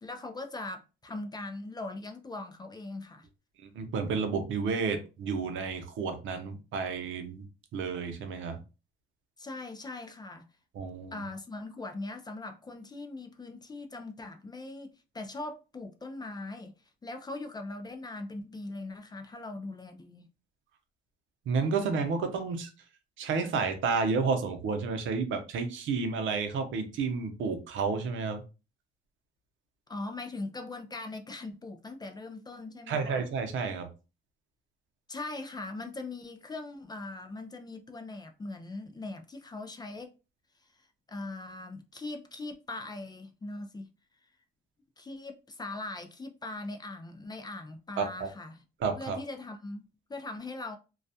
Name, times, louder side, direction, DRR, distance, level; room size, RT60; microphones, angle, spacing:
voice 1, 0.0-3.3 9.4-10.5 11.1-16.7 17.0-20.2 29.9-33.2 35.1-40.1 40.8-43.9 45.0-48.6 49.0-50.8, left 2 dB, 20° left, 0.4 m, -40 dB
voice 2, 3.6-7.5 7.7-8.6 10.7-11.2 21.5-22.7 23.2-28.4 32.9-33.9 48.0-48.3 48.8-49.2, right 5 dB, 75° right, 0.6 m, -31 dB
2.3 x 2.1 x 2.6 m
cardioid pair, 90°, 20 cm